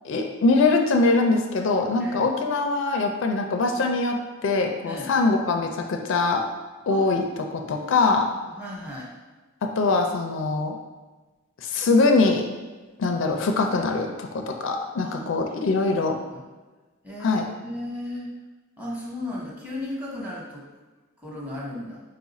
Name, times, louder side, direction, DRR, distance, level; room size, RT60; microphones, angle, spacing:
voice 1, 0.0-6.4 6.9-8.3 9.6-10.7 11.6-12.5 13.0-16.2 17.2-17.4, left 3 dB, 65° left, 3 dB, 0.4 m, -23 dB
voice 2, 7.4-7.9 8.4-9.1 15.0-15.7 16.3-16.5 17.0-18.3 18.8-20.6 21.2-22.0, left 1 dB, 10° right, -6 dB, 1.0 m, -36 dB
4.3 x 2.4 x 4.0 m, 1.3 s
head